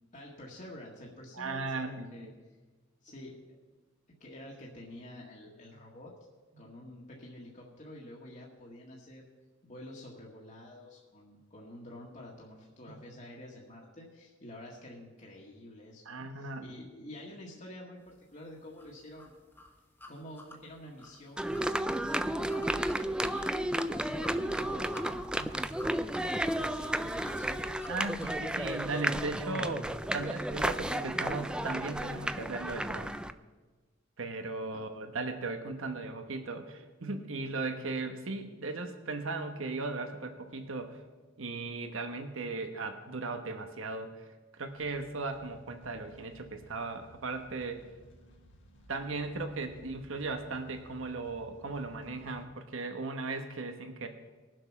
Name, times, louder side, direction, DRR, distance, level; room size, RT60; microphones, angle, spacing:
voice 1, 0.1-2.3 3.0-3.6 4.2-6.1 6.6-9.3 9.6-19.3 20.1-25.6 26.6-28.1 34.7-34.8, left 1 dB, 40° left, -3 dB, 1.8 m, -48 dB
voice 2, 1.3-2.3 16.0-16.6 25.4-25.5 27.9-33.1 34.2-41.0 41.4-44.3 44.5-47.9 48.9-54.1, right 3 dB, 80° right, 6 dB, 1.2 m, -37 dB
sound 1, 18.8-28.8, left 1 dB, 10° left, 1.4 m, -50 dB
sound 2, 21.4-33.3, right 1 dB, 5° right, 0.4 m, -33 dB
sound 3, 44.7-52.5, equal, 65° left, 1.6 m, -58 dB
20.0 x 7.7 x 6.0 m, 1.3 s
head